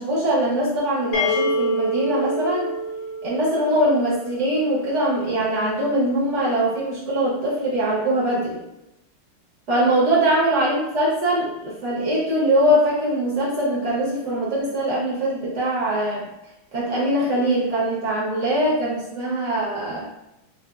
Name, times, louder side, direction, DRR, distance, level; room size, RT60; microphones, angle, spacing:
voice 1, 0.0-2.7 3.2-8.6 9.7-16.2 16.7-20.1, right 1 dB, 60° right, -6 dB, 0.7 m, -22 dB
sound 1, 1.1-4.9, equal, 85° left, 1.6 m, -27 dB
5.5 x 2.2 x 2.3 m, 0.88 s
omnidirectional pair, 2.4 m